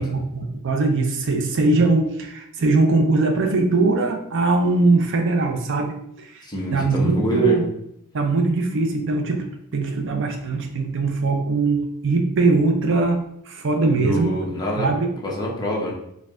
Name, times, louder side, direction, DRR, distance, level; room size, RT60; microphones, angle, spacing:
voice 1, 0.0-7.7 8.1-14.3 14.8-15.1, right 3 dB, 60° right, 4 dB, 0.5 m, -21 dB
voice 2, 6.4-7.6 13.9-14.9 15.2-15.9, equal, 20° left, -4 dB, 1.0 m, -25 dB
4.4 x 2.3 x 3.5 m, 0.79 s
head